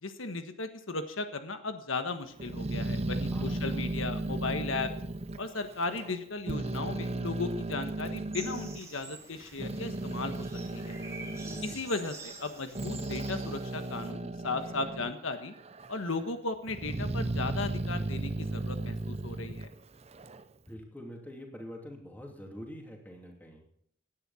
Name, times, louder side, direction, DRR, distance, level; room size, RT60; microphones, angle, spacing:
voice 1, 0.0-4.9 5.4-10.5 10.7-11.0 11.6-15.5 15.9-19.7, left 3 dB, 85° left, 8 dB, 1.4 m, -36 dB
Growling, 2.4-6.2 6.5-8.8 9.3-15.2 15.5-16.2 16.7-20.4, right 2 dB, 30° right, 0.7 m, -35 dB
voice 2, 3.3-3.8 11.4-11.9 20.7-23.6, equal, 10° left, 1 dB, 3.0 m, -45 dB
sound 1, 8.3-14.1, right 4 dB, 15° right, 1.8 m, -48 dB
17.5 x 10.0 x 4.3 m, 0.65 s
head